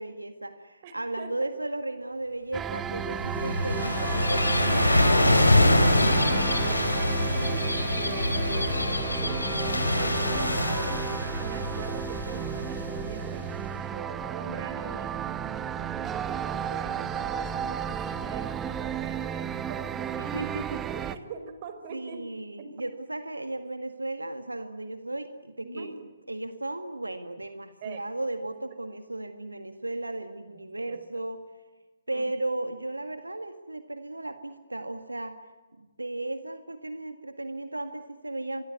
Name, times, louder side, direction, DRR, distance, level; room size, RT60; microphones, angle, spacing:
voice 1, 0.0-5.4 20.2-21.1 21.9-25.9 26.3-31.4 32.1-35.4 35.8-38.6, right 2 dB, 85° right, 8 dB, 1.8 m, -35 dB
voice 2, 0.8-1.5 4.9-5.2 5.5-20.6 20.9-22.2 22.6-22.7 25.6-25.9 27.8-28.0 30.5-31.0 32.1-32.3, right 6 dB, 40° right, 9 dB, 4.7 m, -43 dB
sound 1, 2.5-21.2, right 8 dB, 15° right, 1.1 m, -34 dB
Gull seagull / Waves surf, 3.0-13.6, left 1 dB, 90° left, 3.9 m, -25 dB
26.5 x 23.0 x 9.7 m, 1.2 s
figure-of-eight pair, 135°, 0 cm